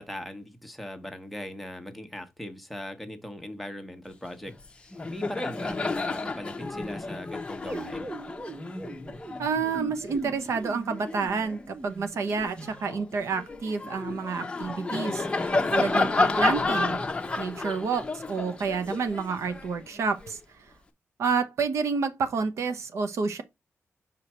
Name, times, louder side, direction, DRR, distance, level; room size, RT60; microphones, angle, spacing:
voice 1, 0.0-8.1 15.5-15.9, left 1 dB, ahead, 1.1 m, -39 dB
Laughter, 4.5-4.7 4.9-11.6 12.1-20.3, left 3 dB, 20° left, 0.8 m, -31 dB
sound 1, 7.6-13.1, right 2 dB, 25° right, 0.8 m, -41 dB
voice 2, 9.4-17.0 17.4-20.4 21.2-23.4, right 5 dB, 70° right, 0.9 m, -29 dB
5.7 x 5.0 x 4.3 m
wide cardioid pair, 130°, 5 cm